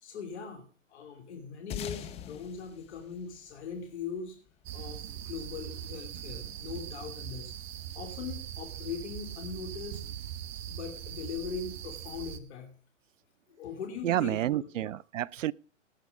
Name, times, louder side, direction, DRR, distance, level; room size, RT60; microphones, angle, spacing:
voice 1, 0.0-4.4 4.7-7.5 7.9-10.0 10.7-12.7 13.6-14.9, left 6 dB, 55° left, 3.0 m, -40 dB
sound 1, 1.7-4.5, left 10 dB, 15° left, 0.8 m, -42 dB
sound 2, 4.7-12.4, right 11 dB, 50° right, 1.1 m, -41 dB
voice 2, 14.0-15.5, right 12 dB, 75° right, 0.5 m, -29 dB
18.5 x 6.2 x 5.2 m
hypercardioid pair, 130°, 39 cm